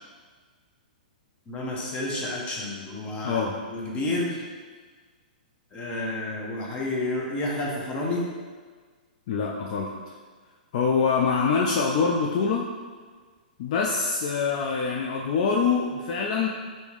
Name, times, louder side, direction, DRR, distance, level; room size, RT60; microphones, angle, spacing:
voice 1, 1.5-4.4 5.7-8.3, left 2 dB, 20° left, -3 dB, 0.7 m, -30 dB
voice 2, 3.2-3.5 9.3-9.9 10.7-12.6 13.6-16.5, left 5 dB, 50° left, -1 dB, 0.3 m, -24 dB
3.4 x 2.7 x 3.0 m, 1.5 s
hypercardioid pair, 135°, 5 cm